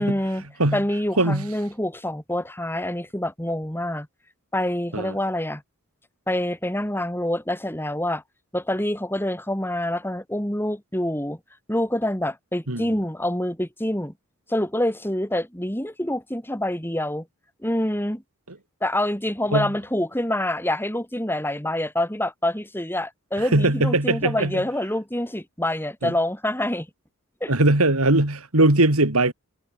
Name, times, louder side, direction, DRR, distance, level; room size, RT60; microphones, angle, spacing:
voice 1, 0.0-0.4 0.7-4.1 4.5-5.6 6.3-8.2 8.5-11.4 11.7-14.1 14.5-17.3 17.6-18.2 18.8-26.9 27.4-27.5, left 1 dB, 10° left, 3.6 m, -26 dB
voice 2, 1.2-1.5 4.9-5.1 12.7-12.8 19.5-19.7 23.4-24.6 26.0-26.1 27.5-29.3, right 2 dB, 80° right, 3.3 m, -20 dB
head